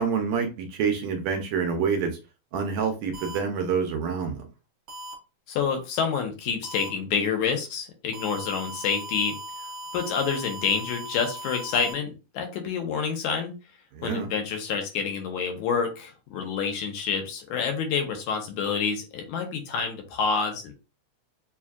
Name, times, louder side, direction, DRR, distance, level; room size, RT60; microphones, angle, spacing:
voice 1, 0.0-2.1 2.5-4.5 13.9-14.3, right 6 dB, 75° right, 4 dB, 1.8 m, -27 dB
sound 1, 3.1-3.4 4.9-5.1 6.6-6.9 8.1-11.9, equal, 55° right, 2.2 m, -38 dB
voice 2, 5.5-9.4 9.9-13.5 14.0-20.7, left 6 dB, 80° left, 4 dB, 2.3 m, -28 dB
7.0 x 2.4 x 2.3 m, 0.30 s
omnidirectional pair, 3.5 m